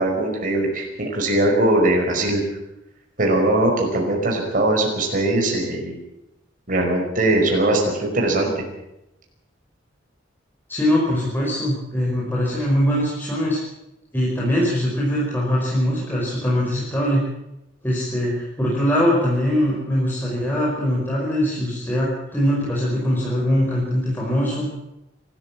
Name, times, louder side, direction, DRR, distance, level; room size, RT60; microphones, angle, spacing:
voice 1, 0.0-2.4 3.2-6.0 6.7-8.6, right 1 dB, 45° right, 1 dB, 5.4 m, -20 dB
voice 2, 10.7-13.6 14.1-17.2 17.8-24.7, equal, 10° left, -5 dB, 5.2 m, -22 dB
26.5 x 13.5 x 7.5 m, 0.90 s
head